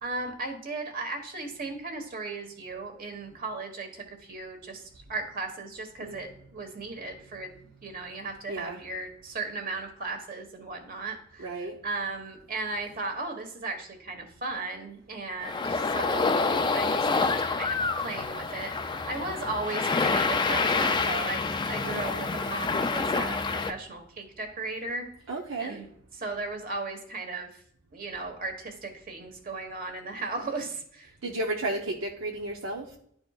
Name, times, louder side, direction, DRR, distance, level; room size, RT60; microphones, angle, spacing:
voice 1, 0.0-4.8 5.1-7.5 7.8-16.4 16.7-21.4 21.7-25.1 25.6-25.9 26.1-27.5 27.9-31.1, right 3 dB, 45° right, 4 dB, 1.3 m, -36 dB
voice 2, 8.5-8.8 11.4-11.8 21.8-22.2 25.3-25.8 31.2-32.9, right 2 dB, 70° right, 0 dB, 0.7 m, -33 dB
sound 1, 15.4-23.7, left 4 dB, 20° left, 0.4 m, -27 dB
11.5 x 4.3 x 2.4 m, 0.67 s
head